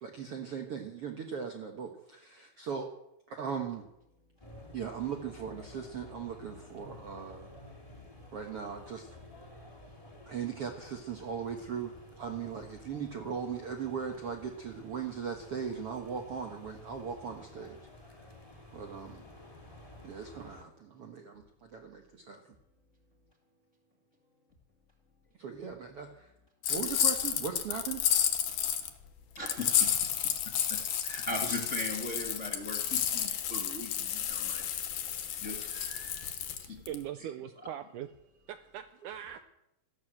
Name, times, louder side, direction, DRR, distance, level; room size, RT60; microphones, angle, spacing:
voice 1, 0.0-2.9 3.3-3.9 4.7-7.5 8.3-9.2 10.3-17.8 18.7-19.2 20.0-22.5 25.4-26.3 26.7-28.0 39.3-39.4, right 7 dB, 65° right, 3 dB, 1.5 m, -39 dB
sound 1, 4.4-20.6, left 1 dB, 10° left, 2.2 m, -52 dB
sound 2, 26.6-28.9 29.5-37.0, left 9 dB, 70° left, 2.7 m, -31 dB
voice 2, 29.3-29.9 30.7-34.7 35.4-36.3 36.7-36.8 37.2-37.3, left 1 dB, 35° left, 1 dB, 1.2 m, -39 dB
voice 3, 36.6-38.1 38.5-39.4, right 11 dB, 85° right, 10 dB, 1.8 m, -41 dB
14.5 x 12.0 x 7.8 m, 0.85 s
omnidirectional pair, 4.5 m